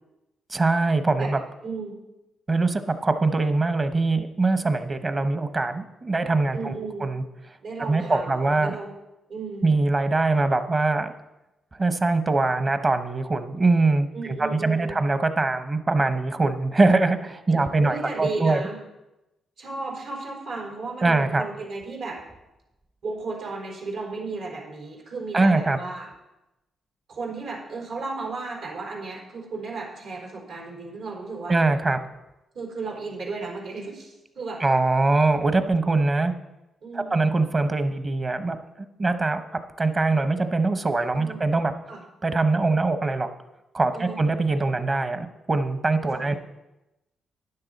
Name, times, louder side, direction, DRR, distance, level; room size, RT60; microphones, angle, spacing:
voice 1, 0.5-1.4 2.5-7.2 7.9-8.8 9.6-11.1 11.8-18.7 21.0-21.4 25.3-25.8 31.5-32.0 34.6-36.3 36.9-38.6 39.0-39.4 39.8-41.7 42.2-43.3 43.7-46.4, right 3 dB, 30° right, 9 dB, 0.9 m, -22 dB
voice 2, 1.6-2.0 6.5-7.1 7.6-8.9 9.3-9.7 14.1-15.0 17.5-18.8 19.6-22.2 23.0-26.1 27.1-31.6 32.5-34.6 36.8-37.2 41.1-41.4 41.9-42.0 43.9-44.2 46.0-46.4, right 3 dB, 80° right, -2 dB, 4.1 m, -34 dB
12.5 x 9.9 x 4.0 m, 0.96 s
cardioid pair, 95°, 0 cm